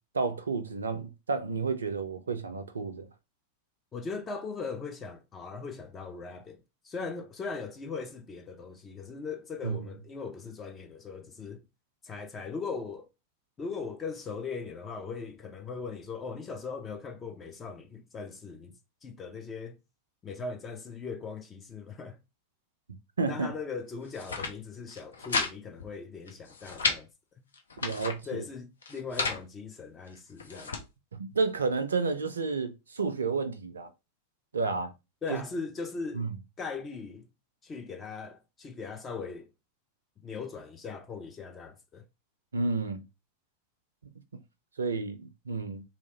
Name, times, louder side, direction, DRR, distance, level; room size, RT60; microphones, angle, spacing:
voice 1, 0.1-3.1 9.6-9.9 23.2-23.5 27.8-28.4 31.2-33.9 34.5-34.9 35.3-35.4 36.1-36.4 42.5-43.0 44.8-45.8, right 4 dB, 70° right, 0.4 m, -31 dB
voice 2, 3.9-11.6 12.0-13.1 13.6-18.7 19.0-19.8 20.2-22.2 23.2-27.1 28.3-30.8 35.2-36.3 36.6-37.3 37.6-39.5 40.2-42.0, left 4 dB, 20° left, 0.5 m, -39 dB
sound 1, 24.0-24.5 24.9-25.5 25.8-25.9 26.3-27.0 27.5-28.2 28.8-29.4 30.1-30.8, left 4 dB, 70° left, 0.6 m, -32 dB
2.8 x 2.4 x 2.8 m
figure-of-eight pair, 90°, 0 cm